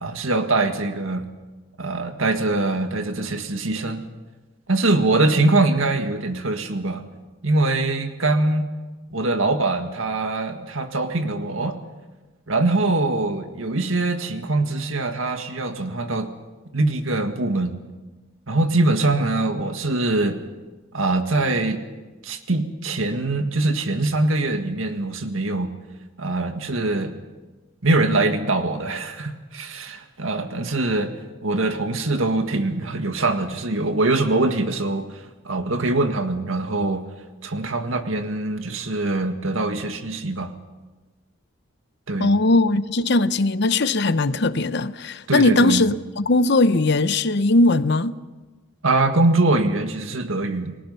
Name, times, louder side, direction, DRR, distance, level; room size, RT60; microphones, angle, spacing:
voice 1, 0.0-1.2 1.8-4.0 4.7-7.0 7.4-8.7 9.1-11.8 12.5-16.3 16.7-17.7 18.5-20.4 20.9-21.8 22.2-25.7 26.2-27.1 27.8-31.1 31.4-37.0 37.4-40.5 42.1-42.3 45.3-45.8 48.8-50.7, right 2 dB, 80° right, 1.9 m, -23 dB
voice 2, 42.2-48.2, left 2 dB, 55° left, 0.8 m, -19 dB
30.0 x 20.0 x 5.6 m
head